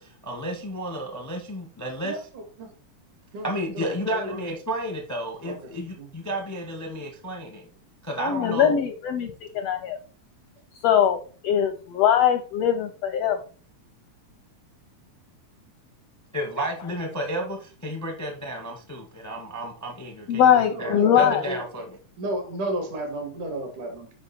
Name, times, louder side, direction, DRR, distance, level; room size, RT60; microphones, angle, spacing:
voice 1, 0.0-2.3 3.4-7.6 8.0-8.8 16.3-20.4 20.8-22.0, right 1 dB, 15° left, 2 dB, 0.5 m, -32 dB
voice 2, 2.0-2.7 3.3-4.4 5.4-5.7 6.0-6.1 8.2-8.6 20.7-21.6 22.2-24.1, right 1 dB, 75° right, 4 dB, 3.5 m, -33 dB
voice 3, 8.2-10.0 10.7-13.4 16.6-16.9 20.3-21.5, left 9 dB, 80° left, 7 dB, 1.4 m, -22 dB
8.0 x 5.5 x 4.3 m, 0.40 s
omnidirectional pair, 3.6 m